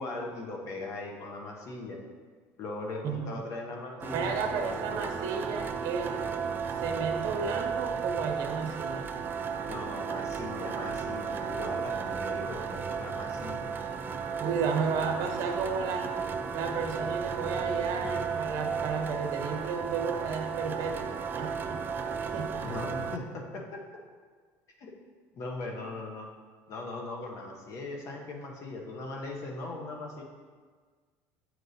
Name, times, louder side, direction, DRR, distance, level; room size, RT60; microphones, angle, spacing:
voice 1, 0.0-2.0 2.6-4.8 9.7-13.7 22.6-23.8 24.8-24.9 25.3-26.3 26.7-30.2, left 2 dB, 50° left, 1 dB, 1.0 m, -39 dB
sound 1, 4.0-23.2, right 6 dB, 30° right, 0.4 m, -34 dB
voice 2, 4.1-6.2 6.8-9.1 14.4-16.1 16.5-21.8 22.3-22.6, right 5 dB, 55° right, 4 dB, 0.9 m, -33 dB
7.8 x 4.6 x 2.7 m, 1.5 s
supercardioid pair, 110°, 7 cm